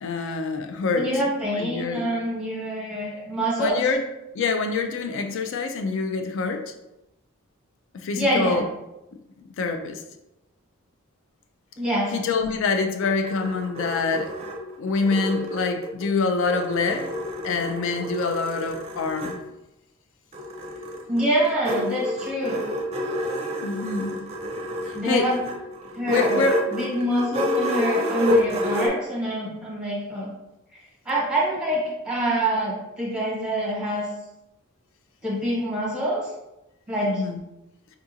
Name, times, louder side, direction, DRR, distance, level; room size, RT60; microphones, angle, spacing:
voice 1, 0.0-1.1 1.5-2.0 3.6-4.0 4.3-6.6 7.9-8.6 9.6-10.0 12.1-14.3 14.8-17.1 17.4-19.4 23.6-24.2 25.0-25.3 26.1-26.6 37.1-37.4, left 4 dB, 60° left, 6 dB, 0.3 m, -25 dB
voice 2, 0.9-3.8 8.1-8.6 11.8-12.1 21.1-22.6 24.9-25.4 25.9-26.4 26.7-30.3 31.0-34.1 35.2-36.2 36.9-37.2, right 1 dB, 5° right, -5 dB, 1.0 m, -25 dB
sound 1, 13.0-16.1 16.5-19.4 20.3-28.9, left 1 dB, 30° right, 0.5 m, -29 dB
4.6 x 2.4 x 2.7 m, 0.94 s
head